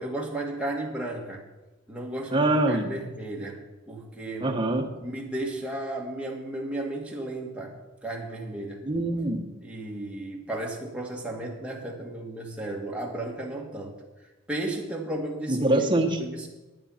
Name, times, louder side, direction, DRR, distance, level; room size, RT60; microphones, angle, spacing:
voice 1, 0.0-1.4 1.9-3.6 3.9-4.6 5.0-7.7 8.0-8.8 9.6-14.0 14.5-15.9 16.2-16.5, right 1 dB, 5° right, -2 dB, 1.9 m, -34 dB
voice 2, 2.3-2.9 4.4-4.9 8.8-9.4 15.5-16.2, right 2 dB, 25° right, 3 dB, 1.3 m, -24 dB
11.5 x 8.7 x 5.8 m, 1.1 s
head